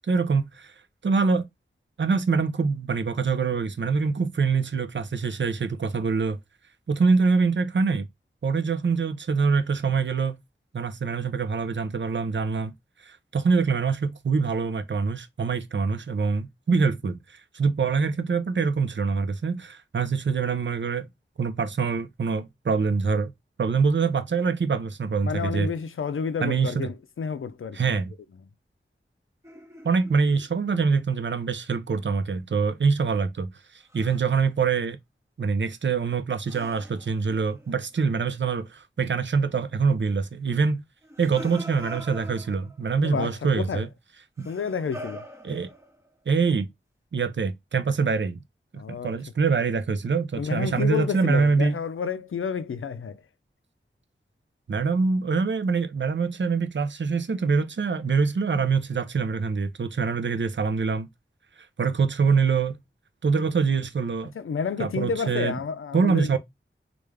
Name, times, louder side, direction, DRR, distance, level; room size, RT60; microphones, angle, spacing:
voice 1, 0.1-0.7 1.0-1.5 2.0-6.4 6.9-8.1 8.4-10.4 10.7-12.7 13.0-21.1 21.4-23.3 23.6-25.7 26.4-26.9 27.7-28.1 29.8-33.5 33.9-35.0 35.4-40.8 41.2-43.9 44.4-44.5 45.4-45.7 46.3-46.7 47.1-48.4 48.9-51.7 54.7-61.1 61.8-62.8 63.2-64.3 64.8-65.6 65.9-66.4, right 5 dB, 60° right, 0.5 m, -24 dB
voice 2, 25.2-28.0 43.0-43.9 44.4-45.2 48.7-49.1 50.4-53.2 64.3-66.4, left 6 dB, 75° left, 0.5 m, -30 dB
sound 1, 29.4-30.9 33.9-34.4 36.4-38.2 41.0-42.9 44.4-46.1, right 1 dB, 15° right, 0.8 m, -43 dB
3.4 x 2.5 x 3.2 m
wide cardioid pair, 50°, 21 cm